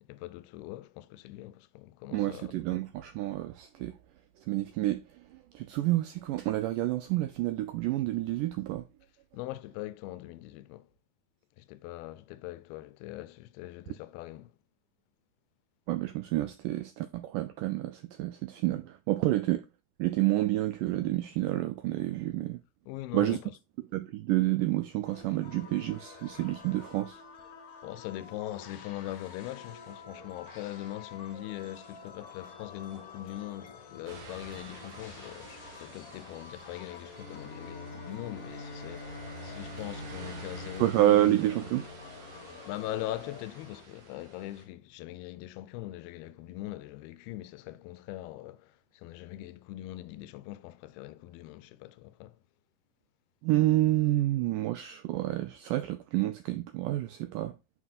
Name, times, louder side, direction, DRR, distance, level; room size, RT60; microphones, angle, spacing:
voice 1, 0.0-2.5 9.3-10.9 11.6-14.6 22.9-23.5 27.8-41.4 42.3-52.4, left 15 dB, 90° left, 2.5 m, -41 dB
voice 2, 2.1-4.0 4.4-8.9 15.9-19.7 20.0-22.6 23.1-23.4 23.9-27.2 40.8-41.8 53.4-57.6, right 15 dB, 85° right, 1.9 m, -29 dB
sound 1, 25.0-43.8, left 5 dB, 65° left, 1.6 m, -49 dB
sound 2, 34.1-44.7, right 3 dB, 60° right, 3.0 m, -50 dB
Bowed string instrument, 37.1-43.0, left 2 dB, 25° right, 2.4 m, -45 dB
9.3 x 6.0 x 2.5 m
omnidirectional pair, 4.3 m